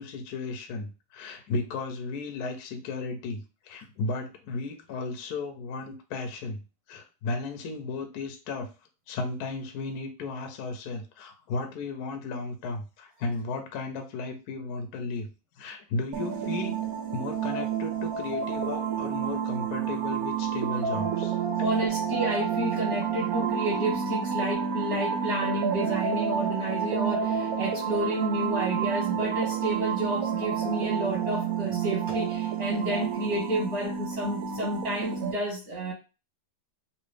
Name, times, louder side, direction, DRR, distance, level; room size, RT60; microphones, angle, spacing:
voice 1, 0.0-6.6 6.9-8.7 9.1-15.3 15.6-16.8 17.1-21.4 32.7-32.8, left 3 dB, 65° left, 5 dB, 1.1 m, -34 dB
sound 1, 16.1-35.3, right 7 dB, 65° right, 1.0 m, -29 dB
voice 2, 21.6-35.9, right 1 dB, 40° right, -2 dB, 1.1 m, -30 dB
3.1 x 2.8 x 3.2 m, 0.30 s
omnidirectional pair, 1.9 m